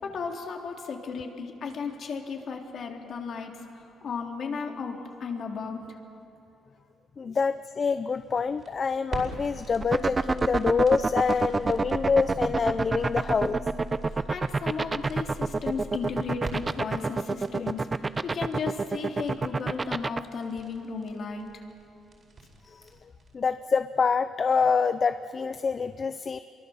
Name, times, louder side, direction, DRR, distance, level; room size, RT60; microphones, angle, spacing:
voice 1, 0.0-5.9 14.1-21.6, left 5 dB, 60° left, 2 dB, 3.3 m, -35 dB
voice 2, 7.2-13.6 22.7-22.8 23.3-26.4, left 5 dB, 45° left, 11 dB, 0.7 m, -26 dB
sound 1, 8.1-23.3, right 2 dB, 45° right, 4.8 m, -43 dB
sound 2, 9.8-20.2, right 3 dB, 30° right, 0.8 m, -26 dB
26.0 x 23.0 x 7.2 m, 2.6 s
cardioid pair, 75°, 0 cm